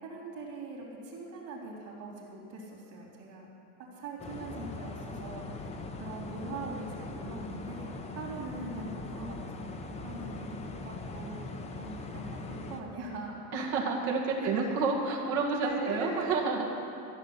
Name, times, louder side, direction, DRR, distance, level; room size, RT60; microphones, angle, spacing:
voice 1, 0.0-3.5 4.0-5.7 6.0-13.4 14.4-14.7 15.6-16.3, right 3 dB, 40° right, -2 dB, 3.6 m, -41 dB
sound 1, 4.2-12.8, left 3 dB, 15° left, 0.6 m, -41 dB
voice 2, 13.5-16.8, right 4 dB, 60° right, -1 dB, 2.2 m, -29 dB
14.5 x 7.0 x 9.6 m, 2.8 s
cardioid pair, 160°, 49 cm